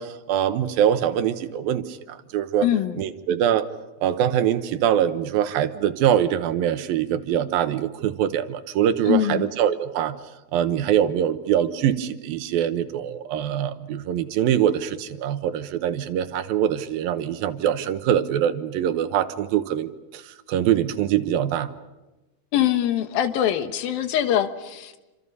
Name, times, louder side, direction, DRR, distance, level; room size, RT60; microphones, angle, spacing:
voice 1, 0.0-2.7 3.0-3.7 4.0-10.2 10.5-21.7, right 10 dB, 85° right, 10 dB, 2.9 m, -23 dB
voice 2, 2.6-3.0 9.1-9.5 22.5-25.0, left 11 dB, 85° left, 9 dB, 3.1 m, -23 dB
28.0 x 26.5 x 5.5 m, 1.1 s
omnidirectional pair, 4.1 m